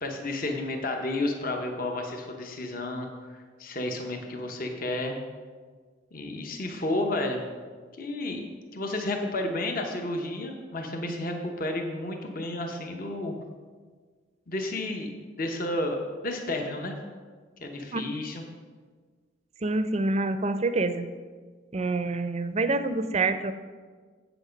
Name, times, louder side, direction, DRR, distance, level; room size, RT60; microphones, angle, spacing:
voice 1, 0.0-5.2 6.1-7.4 8.0-8.4 8.7-13.3 14.5-15.1 15.4-17.0 17.6-18.4 21.8-21.9, left 2 dB, 45° left, 3 dB, 0.9 m, -31 dB
voice 2, 19.6-21.1 21.7-23.5, right 3 dB, 35° right, 10 dB, 0.5 m, -26 dB
8.2 x 7.9 x 5.1 m, 1.5 s
head